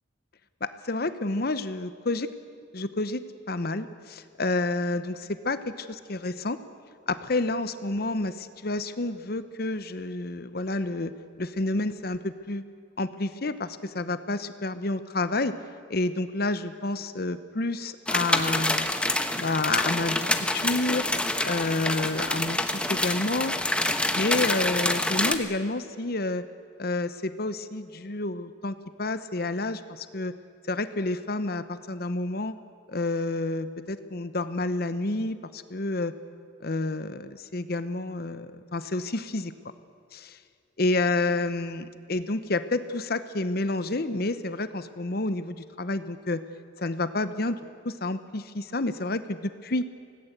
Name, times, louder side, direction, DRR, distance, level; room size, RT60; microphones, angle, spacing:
voice 1, 0.6-2.3 2.7-6.6 7.1-11.1 11.4-12.6 13.0-15.5 15.9-18.9 19.4-21.0 21.4-23.6 24.1-26.4 26.8-30.3 30.7-32.5 32.9-36.1 36.6-39.5 40.1-40.4 40.8-46.4 46.8-47.6 47.8-49.8, left 2 dB, 55° left, 12 dB, 0.9 m, -29 dB
sound 1, 18.1-25.3, left 1 dB, 5° left, 1.1 m, -27 dB
25.5 x 18.0 x 8.1 m, 2.3 s
head